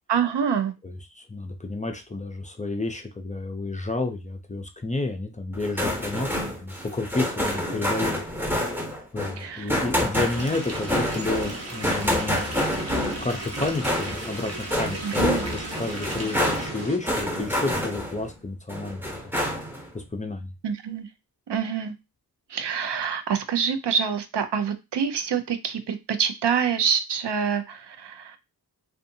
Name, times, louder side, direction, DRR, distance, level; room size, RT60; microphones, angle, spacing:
voice 1, 0.1-0.7 9.4-9.7 15.0-15.4 20.6-21.1 21.5-21.9 22.5-28.4, right 7 dB, 80° right, 9 dB, 0.5 m, -26 dB
voice 2, 0.8-8.2 9.1-12.5 12.9-19.0 19.9-20.5, left 2 dB, 20° left, 5 dB, 0.4 m, -30 dB
sound 1, 5.5-18.3 18.7-19.9, left 1 dB, 5° right, 0.8 m, -28 dB
sound 2, 10.2-16.7, right 2 dB, 35° right, 0.7 m, -38 dB
sound 3, 10.3-17.0, right 1 dB, 65° right, 1.2 m, -39 dB
2.6 x 2.4 x 2.6 m, 0.25 s
wide cardioid pair, 55°, 41 cm